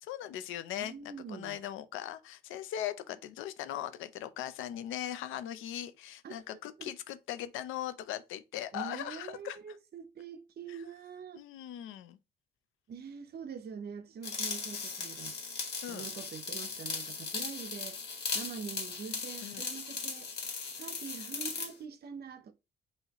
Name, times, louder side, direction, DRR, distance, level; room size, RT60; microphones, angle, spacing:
voice 1, 0.0-0.9 1.3-9.6 10.7-10.8 11.3-12.2 15.8-16.1 19.4-19.6, left 11 dB, 90° left, 0.6 m, -39 dB
voice 2, 0.8-1.6 6.2-6.4 6.8-6.9 8.7-11.4 12.9-15.4 15.9-18.0 18.3-20.3 20.8-22.5, right 6 dB, 55° right, 0.8 m, -44 dB
sound 1, 14.2-21.7, left 4 dB, 55° left, 1.7 m, -38 dB
5.5 x 2.8 x 3.0 m
cardioid pair, 90°, 20 cm